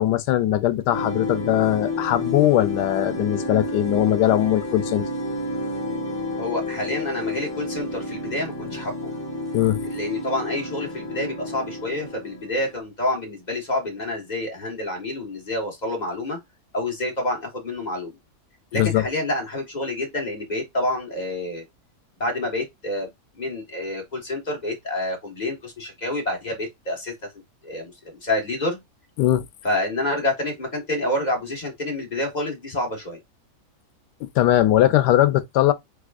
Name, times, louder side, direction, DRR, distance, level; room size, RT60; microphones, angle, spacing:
voice 1, 0.0-5.1 9.5-9.8 18.7-19.0 29.2-29.4 34.4-35.7, left 13 dB, 85° left, 1.2 m, -20 dB
sound 1, 0.9-12.8, left 1 dB, 10° left, 1.3 m, -30 dB
voice 2, 6.4-9.1 9.9-16.4 16.7-18.1 18.7-21.6 22.2-23.1 23.4-27.1 27.6-27.9 28.2-28.8 29.6-33.2, left 1 dB, 25° left, 1.6 m, -28 dB
4.8 x 4.1 x 2.5 m
omnidirectional pair, 1.7 m